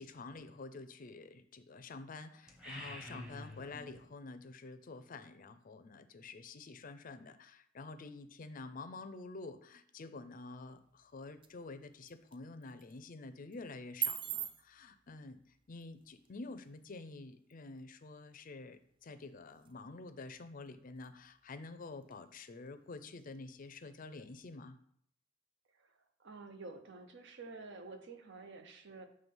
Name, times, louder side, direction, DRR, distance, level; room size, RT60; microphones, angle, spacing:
voice 1, 0.0-15.4 15.7-24.8, left 3 dB, 45° left, 10 dB, 0.5 m, -48 dB
sound 1, 2.5-4.1, left 1 dB, 5° right, 0.9 m, -48 dB
sound 2, 10.5-24.6, right 9 dB, 25° right, 0.4 m, -48 dB
voice 2, 25.8-29.1, right 3 dB, 65° right, 6 dB, 0.8 m, -50 dB
7.2 x 3.3 x 5.4 m, 0.65 s
head